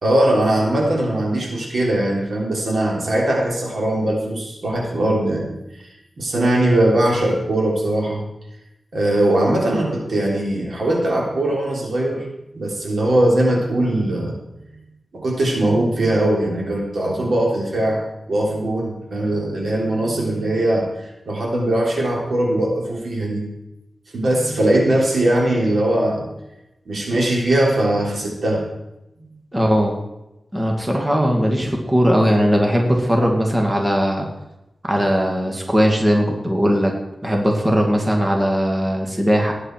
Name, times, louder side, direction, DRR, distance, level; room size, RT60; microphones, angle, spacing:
voice 1, 0.0-5.5 6.2-8.3 8.9-12.3 12.5-14.4 15.1-18.0 18.3-23.5 24.1-26.3 26.9-28.7, right 1 dB, 70° right, -1 dB, 3.6 m, -20 dB
voice 2, 29.5-30.0 30.5-34.3 34.9-36.9 37.2-39.5, equal, 20° right, 1 dB, 2.3 m, -18 dB
18.0 x 9.9 x 4.7 m, 0.92 s
wide cardioid pair, 90°, 0 cm